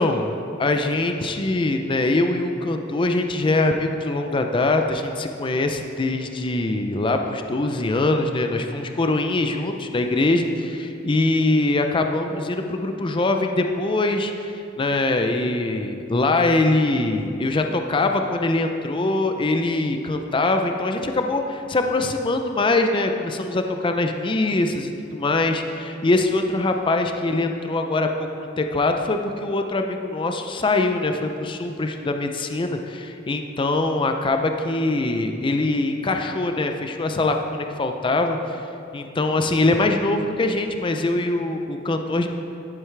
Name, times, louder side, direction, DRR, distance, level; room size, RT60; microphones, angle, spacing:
voice 1, 0.0-38.6 38.9-42.3, left 2 dB, 25° left, 5 dB, 0.4 m, -23 dB
11.0 x 9.4 x 3.3 m, 2.7 s
head